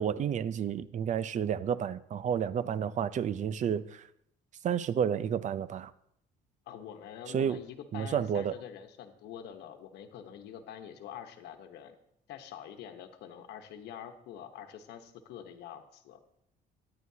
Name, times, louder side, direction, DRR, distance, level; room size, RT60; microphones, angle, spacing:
voice 1, 0.0-4.1 4.6-5.9 7.3-7.6 7.9-8.5, right 8 dB, 45° right, 0.5 m, -31 dB
voice 2, 6.7-12.0 12.3-16.2, left 9 dB, 80° left, 1.1 m, -46 dB
14.0 x 9.9 x 2.8 m
cardioid pair, 110°, 17 cm